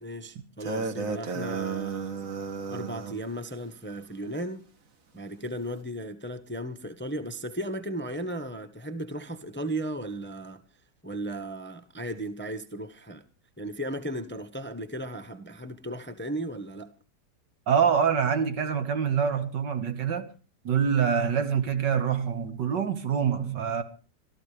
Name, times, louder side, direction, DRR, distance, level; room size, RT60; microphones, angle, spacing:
voice 1, 0.0-2.3 2.7-4.6 5.1-10.6 11.0-13.2 13.6-16.9, right 1 dB, 10° left, 0.8 m, -35 dB
sound 1, 0.6-3.2, right 5 dB, 50° right, 1.7 m, -33 dB
voice 2, 17.7-20.3 20.6-23.8, right 7 dB, 75° right, 2.2 m, -25 dB
25.0 x 14.0 x 3.3 m
omnidirectional pair, 2.0 m